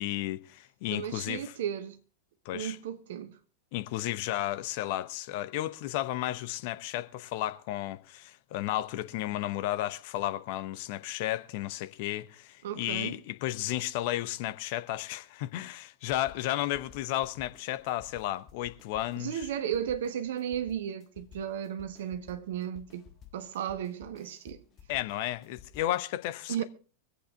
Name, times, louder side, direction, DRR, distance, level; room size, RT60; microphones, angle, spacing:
voice 1, 0.0-1.4 2.4-2.8 3.7-19.5 24.9-26.6, left 14 dB, 50° left, 0.9 m, -33 dB
voice 2, 0.9-2.0 2.5-3.3 12.6-13.2 19.2-23.1 23.3-24.6 26.5-26.6, right 9 dB, 55° right, 1.3 m, -34 dB
sound 1, 16.1-26.0, left 8 dB, 30° left, 1.7 m, -55 dB
24.0 x 8.4 x 3.6 m
figure-of-eight pair, 90°, 0 cm